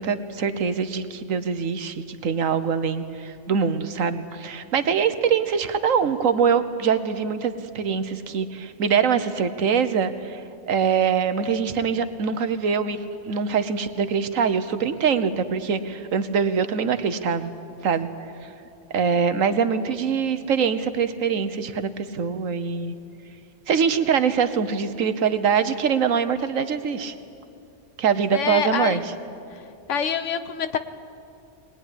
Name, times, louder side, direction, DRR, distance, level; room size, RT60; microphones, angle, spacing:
voice 1, 0.0-13.0 13.3-17.5 17.8-18.1 18.4-18.5 18.9-22.9 23.7-27.1 28.0-29.0, right 6 dB, 75° right, 11 dB, 1.4 m, -23 dB
voice 2, 28.3-29.0 29.5-29.6 29.9-30.8, left 7 dB, 65° left, 11 dB, 1.3 m, -26 dB
21.0 x 20.0 x 10.0 m, 2.7 s
omnidirectional pair, 1.4 m